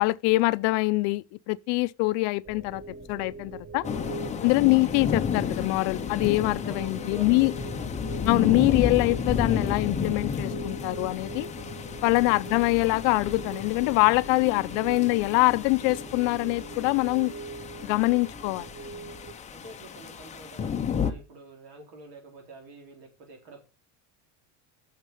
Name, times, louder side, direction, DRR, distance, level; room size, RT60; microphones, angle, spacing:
voice 1, 0.0-3.8 4.4-7.5 8.3-11.5 12.0-17.3 17.8-18.7, left 24 dB, 70° left, 0.6 m, -24 dB
sound 1, 2.4-19.3, right 3 dB, 20° right, 1.6 m, -42 dB
sound 2, 3.8-21.1, left 6 dB, 15° left, 0.6 m, -32 dB
voice 2, 6.6-7.9 12.1-12.4 19.5-23.6, right 2 dB, 70° right, 4.3 m, -47 dB
9.1 x 6.8 x 5.3 m
cardioid pair, 170°, 45 cm